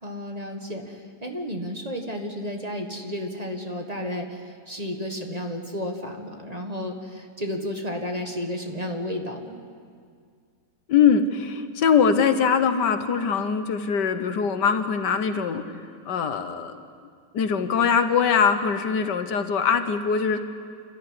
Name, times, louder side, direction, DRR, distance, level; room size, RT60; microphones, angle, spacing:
voice 1, 0.0-9.6, equal, 25° right, 3 dB, 1.7 m, -32 dB
voice 2, 10.9-15.6 16.1-16.7 17.3-20.4, left 6 dB, 85° left, 9 dB, 1.8 m, -22 dB
28.5 x 13.5 x 9.8 m, 2.1 s
omnidirectional pair, 1.8 m